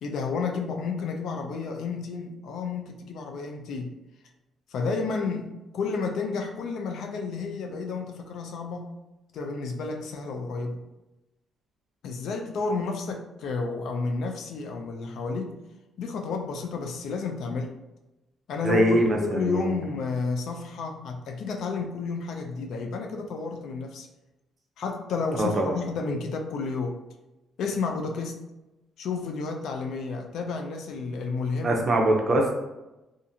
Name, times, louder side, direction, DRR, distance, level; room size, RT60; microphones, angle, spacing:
voice 1, 0.0-3.9 4.7-9.0 9.3-10.8 12.0-15.6 16.0-17.7 18.5-24.1 24.8-27.0 27.6-28.5 29.0-31.9, left 4 dB, 70° left, 3 dB, 0.4 m, -31 dB
voice 2, 18.6-19.7 25.4-25.8 31.6-32.6, right 1 dB, 40° right, 1 dB, 0.6 m, -23 dB
2.4 x 2.4 x 2.7 m, 1.0 s
cardioid pair, 90°, 0 cm